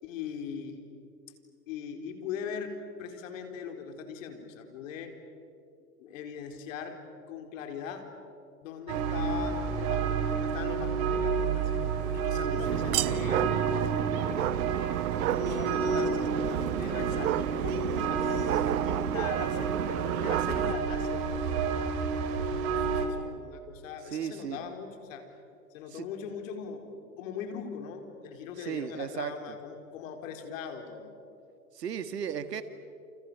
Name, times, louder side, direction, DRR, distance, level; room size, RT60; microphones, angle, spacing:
voice 1, 0.0-0.8 1.7-2.7 3.0-5.1 6.0-7.0 7.3-8.1 8.6-14.9 15.3-16.3 16.8-22.0 22.7-25.2 25.7-31.1, left 7 dB, 55° left, 5 dB, 4.6 m, -41 dB
sound 1, 8.9-23.1, right 5 dB, 45° right, 3.8 m, -30 dB
voice 2, 12.4-12.8 24.1-24.6 25.9-26.0 28.6-29.6 31.7-32.6, right 8 dB, 85° right, 10 dB, 2.1 m, -36 dB
sound 2, 12.6-20.7, right 16 dB, 65° right, 0.7 m, -32 dB
29.0 x 28.5 x 7.0 m, 2.5 s
hypercardioid pair, 130°, 47 cm